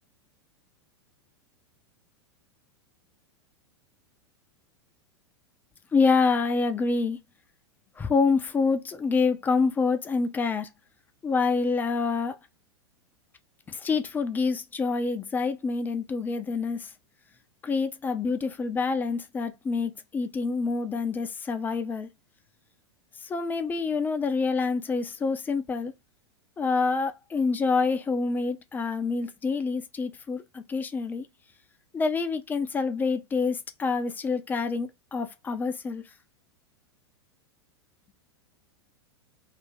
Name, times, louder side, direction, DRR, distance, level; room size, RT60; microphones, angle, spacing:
voice 1, 5.9-7.2 8.0-10.7 11.2-12.4 13.7-16.9 17.6-22.1 23.2-25.9 26.6-31.3 31.9-36.0, left 4 dB, 10° left, 0.4 m, -27 dB
2.5 x 2.4 x 3.3 m
figure-of-eight pair, 90°, 14 cm